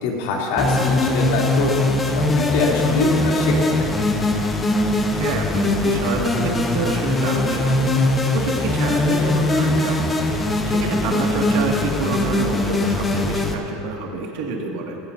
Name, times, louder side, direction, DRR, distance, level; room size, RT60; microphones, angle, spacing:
voice 1, 0.0-3.9, left 3 dB, 80° left, -3 dB, 3.0 m, -24 dB
sound 1, 0.6-13.5, left 2 dB, 10° left, 0.8 m, -21 dB
voice 2, 5.1-15.0, right 4 dB, 60° right, 0 dB, 2.1 m, -28 dB
19.0 x 17.0 x 2.7 m, 2.8 s
supercardioid pair, 175°, 0 cm